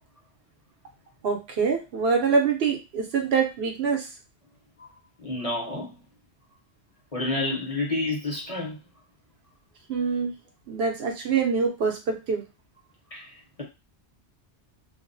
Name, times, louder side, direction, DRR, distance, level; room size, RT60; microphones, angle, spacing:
voice 1, 1.2-4.1 9.9-10.3 10.7-12.4, right 5 dB, 65° right, 0.8 m, -25 dB
voice 2, 5.2-5.9 7.1-8.8 13.1-13.6, left 2 dB, 35° left, 0.7 m, -30 dB
2.3 x 2.2 x 2.5 m
omnidirectional pair, 1.2 m